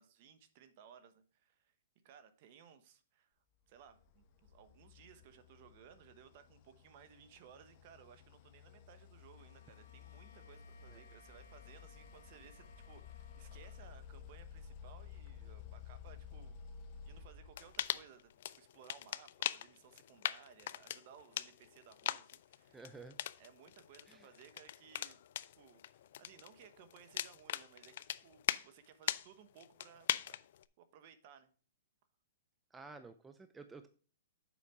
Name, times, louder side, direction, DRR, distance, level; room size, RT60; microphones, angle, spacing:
voice 1, 0.0-1.7 2.0-3.4 3.7-16.6 17.1-22.8 23.4-25.3 25.6-25.8 26.2-27.9 28.2-30.4 30.8-31.5, right 8 dB, 45° right, 11 dB, 1.0 m, -60 dB
sound 1, 3.8-18.3, left 7 dB, 40° left, 0.9 m, -54 dB
Bowed string instrument, 9.2-14.1, left 4 dB, 85° left, 1.8 m, -64 dB
sound 2, 17.6-28.7 29.0-29.3 29.6-30.6, left 12 dB, 60° left, 0.4 m, -41 dB
voice 2, 22.7-23.2 24.1-24.3 32.7-33.9, right 3 dB, 10° right, 9 dB, 0.4 m, -52 dB
7.1 x 5.0 x 4.7 m, 0.40 s
hypercardioid pair, 150°, 0 cm